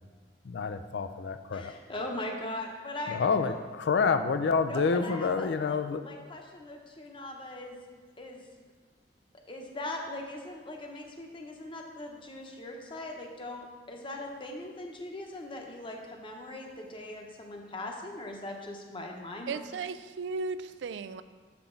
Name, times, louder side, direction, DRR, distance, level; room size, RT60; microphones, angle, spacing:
voice 1, 0.5-1.7 3.1-3.5 3.8-6.0, left 5 dB, 70° left, 9 dB, 0.4 m, -28 dB
voice 2, 1.5-3.6 4.7-7.8 8.2-8.4 9.5-19.6, left 1 dB, 30° left, 2 dB, 0.9 m, -40 dB
voice 3, 19.5-21.2, right 4 dB, 75° right, 13 dB, 0.3 m, -35 dB
7.0 x 6.0 x 3.8 m, 1.5 s
head